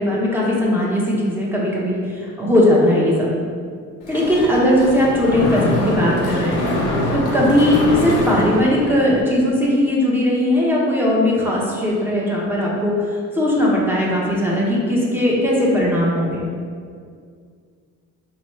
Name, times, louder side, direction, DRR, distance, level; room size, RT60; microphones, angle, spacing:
voice 1, 0.0-3.3 4.1-6.7 7.1-13.1 13.4-16.4, left 1 dB, 5° right, -5 dB, 1.0 m, -18 dB
Mechanisms, 4.0-9.2, left 1 dB, 90° left, 0.7 m, -23 dB
4.4 x 3.0 x 3.1 m, 2.1 s
cardioid pair, 90°, 30 cm